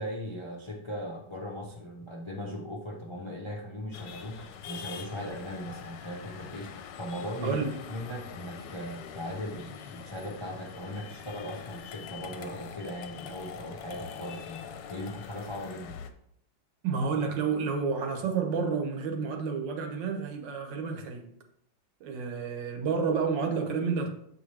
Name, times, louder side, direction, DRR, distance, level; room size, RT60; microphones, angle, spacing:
voice 1, 0.0-7.6 7.9-16.0, equal, 50° left, 0.3 m, -38 dB
sound 1, 3.9-16.1, left 7 dB, 75° left, 1.2 m, -44 dB
voice 2, 7.4-7.8 16.8-21.3 22.0-24.1, right 5 dB, 70° right, 1.5 m, -30 dB
7.1 x 4.9 x 3.3 m
omnidirectional pair, 2.1 m